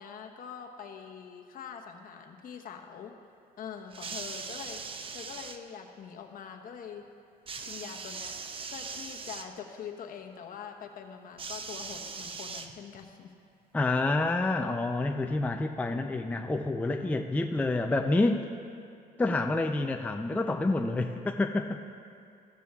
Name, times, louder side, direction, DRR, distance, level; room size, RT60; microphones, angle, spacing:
voice 1, 0.0-3.2 3.6-4.8 5.1-7.1 7.6-8.4 8.7-13.3 17.0-17.2, left 7 dB, 55° left, 4 dB, 1.0 m, -44 dB
sound 1, 3.9-5.6 7.5-9.5 11.4-13.1 14.0-14.1, right 5 dB, 30° right, 0.6 m, -40 dB
voice 2, 13.7-18.4 19.2-21.8, left 2 dB, 10° left, 4 dB, 0.4 m, -28 dB
15.0 x 13.0 x 2.4 m, 2.5 s
cardioid pair, 110°, 17 cm